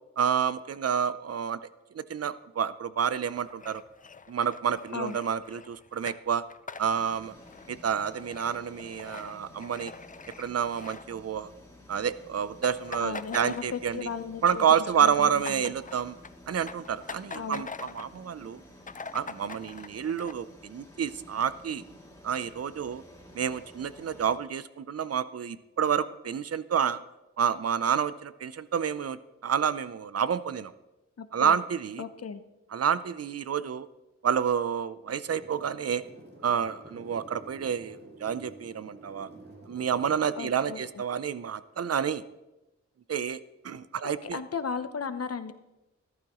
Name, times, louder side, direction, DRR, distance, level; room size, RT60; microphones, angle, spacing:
voice 1, 0.2-1.6 1.9-3.8 4.3-6.4 6.8-7.3 7.7-9.9 10.4-11.5 11.9-14.1 14.4-16.1 16.5-18.6 19.1-21.8 22.2-23.0 23.3-27.0 27.4-29.2 29.4-30.7 31.3-32.0 32.7-33.9 34.2-36.0 36.4-39.3 39.7-42.2 43.1-43.4 43.6-44.4, right 7 dB, 55° right, 15 dB, 0.6 m, -29 dB
sound 1, 3.3-11.7 11.9-12.1 12.4-14.1 14.5-18.2 18.6-18.7 18.8-20.3, left 5 dB, 25° left, 0.5 m, -44 dB
sound 2, 6.8-24.4, left 1 dB, 10° left, 2.7 m, -52 dB
voice 2, 13.0-14.6 14.9-15.6 17.3-17.6 31.2-31.6 32.0-32.4 40.4-41.0 44.0-45.5, left 6 dB, 55° left, 11 dB, 0.9 m, -36 dB
sound 3, 35.3-40.9, right 2 dB, 35° right, 2.6 m, -49 dB
14.0 x 12.0 x 3.1 m, 0.98 s
cardioid pair, 55°, 30 cm